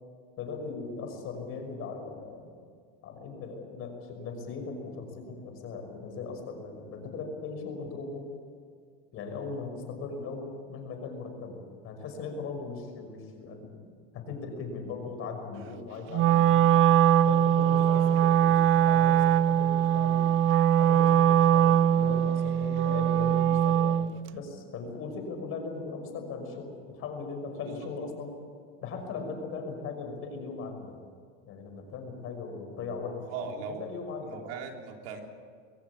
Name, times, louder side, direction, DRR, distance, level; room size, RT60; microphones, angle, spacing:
voice 1, 0.4-2.5 3.0-8.3 9.1-13.8 14.1-16.9 17.2-20.3 20.8-24.0 24.3-28.3 28.8-31.0 31.5-33.3 33.7-34.4, left 4 dB, 45° left, 5 dB, 5.9 m, -39 dB
Wind instrument woodwind instrument, 16.1-24.1, right 10 dB, 40° right, 0.7 m, -22 dB
voice 2, 17.7-18.0 27.6-28.1 33.3-33.9 34.2-35.2, right 5 dB, 70° right, 2 dB, 3.6 m, -40 dB
22.5 x 17.0 x 8.9 m, 2.1 s
supercardioid pair, 135°, 31 cm